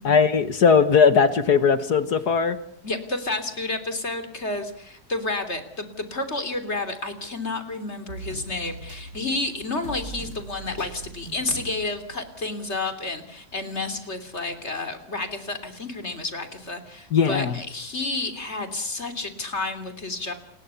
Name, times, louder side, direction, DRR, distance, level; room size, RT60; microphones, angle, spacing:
voice 1, 0.0-2.6 17.1-17.6, left 6 dB, 65° left, 11 dB, 1.9 m, -19 dB
voice 2, 2.8-20.3, left 2 dB, 40° left, 8 dB, 3.5 m, -30 dB
sound 1, 8.1-12.8 13.2-13.3 14.3-14.4, right 2 dB, 60° right, 8.2 m, -41 dB
29.0 x 20.5 x 7.0 m, 0.66 s
omnidirectional pair, 1.8 m